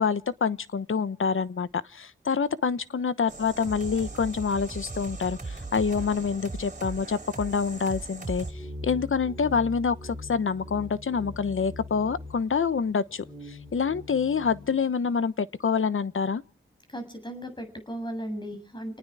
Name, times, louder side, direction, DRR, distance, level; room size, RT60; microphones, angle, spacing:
voice 1, 0.0-16.4, left 5 dB, 80° left, 1.1 m, -27 dB
sound 1, 3.3-8.5, right 3 dB, 40° right, 5.9 m, -38 dB
sound 2, 8.4-14.7, left 2 dB, 5° left, 7.5 m, -42 dB
voice 2, 16.9-19.0, right 1 dB, 20° left, 7.7 m, -36 dB
29.0 x 19.5 x 4.8 m
wide cardioid pair, 105°, 21 cm